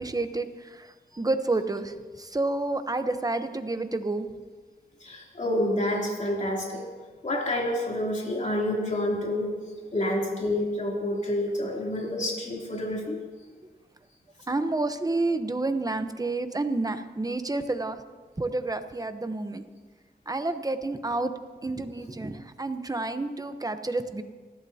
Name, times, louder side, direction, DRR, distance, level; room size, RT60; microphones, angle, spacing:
voice 1, 0.0-4.3 14.5-18.0 18.4-19.6 20.3-21.3 21.6-24.2, right 2 dB, 20° right, 8 dB, 0.9 m, -29 dB
voice 2, 5.0-6.8 7.2-9.5 9.9-13.2, left 1 dB, 45° left, -3 dB, 3.1 m, -28 dB
28.5 x 12.0 x 2.9 m, 1.4 s
wide cardioid pair, 80°, 17 cm